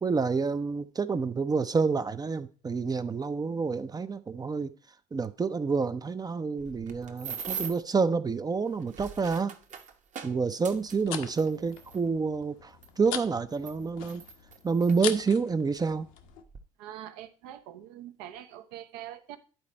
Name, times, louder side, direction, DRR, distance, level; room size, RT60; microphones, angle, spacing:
voice 1, 0.0-4.7 5.1-9.5 10.2-14.2 14.6-16.1, right 4 dB, 20° right, 0.6 m, -28 dB
sound 1, 6.6-7.9 8.7-12.0 12.8-12.9 13.5-15.0 15.8-15.9 16.3-16.6, right 7 dB, 35° right, 1.1 m, -41 dB
sound 2, 10.6-16.4, left 9 dB, 70° left, 0.9 m, -41 dB
voice 2, 16.8-19.4, right 12 dB, 70° right, 0.9 m, -44 dB
10.5 x 4.1 x 4.3 m
hypercardioid pair, 70°, 20 cm